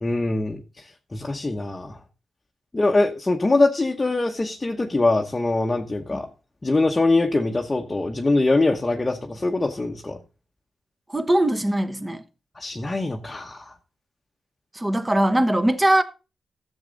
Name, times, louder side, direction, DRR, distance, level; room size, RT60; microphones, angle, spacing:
voice 1, 0.0-2.0 2.7-6.3 6.6-10.2 12.6-13.7, left 2 dB, 20° left, 1.0 m, -23 dB
voice 2, 11.1-12.2 14.7-16.0, right 1 dB, 15° right, 1.0 m, -21 dB
14.0 x 7.3 x 3.9 m
wide cardioid pair, 140°, 0 cm